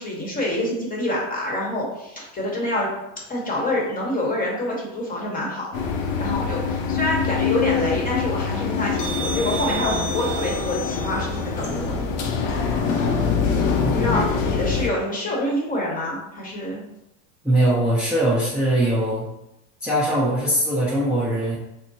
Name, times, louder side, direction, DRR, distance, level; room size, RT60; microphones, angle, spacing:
voice 1, 0.0-2.9 3.3-5.7 6.2-12.1 13.5-16.8, left 1 dB, 20° left, -3 dB, 1.1 m, -26 dB
sound 1, 5.7-14.9, left 5 dB, 75° left, 0.7 m, -24 dB
voice 2, 17.4-19.3 19.8-21.6, right 1 dB, ahead, -9 dB, 0.7 m, -21 dB
4.2 x 2.1 x 2.7 m, 0.87 s
supercardioid pair, 110°, 37 cm